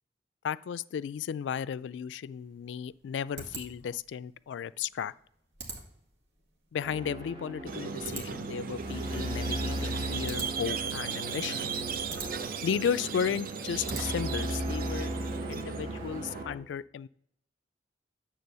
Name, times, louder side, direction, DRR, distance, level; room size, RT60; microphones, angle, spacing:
voice 1, 0.4-5.1 6.7-11.7 12.6-15.1 15.5-17.1, left 7 dB, 80° left, 17 dB, 0.3 m, -34 dB
sound 1, 2.3-14.5, right 3 dB, 80° right, 1.8 m, -46 dB
sound 2, 6.8-16.5, equal, 30° right, 1.8 m, -37 dB
Squeak, 7.7-16.4, right 6 dB, 55° right, 0.5 m, -37 dB
9.6 x 3.7 x 6.7 m, 0.73 s
head